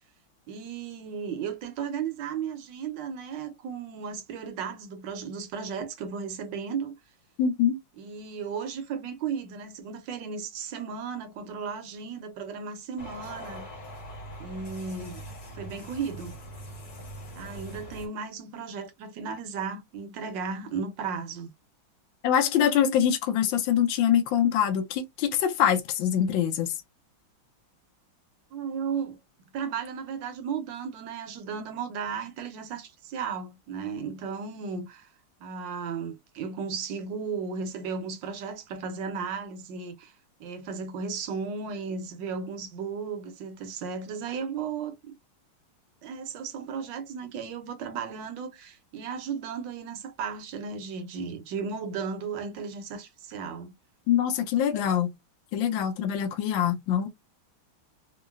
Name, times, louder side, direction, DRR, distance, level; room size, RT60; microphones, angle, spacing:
voice 1, 0.5-6.9 8.0-13.6 14.4-15.2 15.5-16.4 17.4-21.5 28.5-29.2 29.5-35.1 35.4-40.1 40.4-45.1 46.0-53.7, right 6 dB, 70° right, 1.2 m, -35 dB
voice 2, 7.4-7.8 22.2-26.7 54.1-55.1 55.5-57.1, left 9 dB, 75° left, 1.3 m, -24 dB
sound 1, 13.0-18.1, equal, 50° left, 1.7 m, -42 dB
3.7 x 2.0 x 2.3 m
omnidirectional pair, 2.3 m